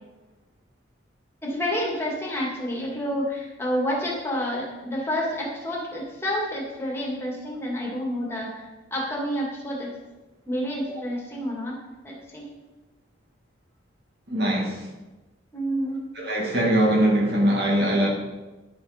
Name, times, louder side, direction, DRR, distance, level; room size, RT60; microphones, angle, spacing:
voice 1, 1.4-8.6 8.9-9.9 10.5-11.8 12.0-12.5 15.5-16.0, equal, 15° left, -4 dB, 2.3 m, -29 dB
voice 2, 14.3-14.8 16.2-18.1, right 1 dB, 55° right, -2 dB, 2.1 m, -22 dB
10.5 x 6.9 x 5.2 m, 1.1 s
head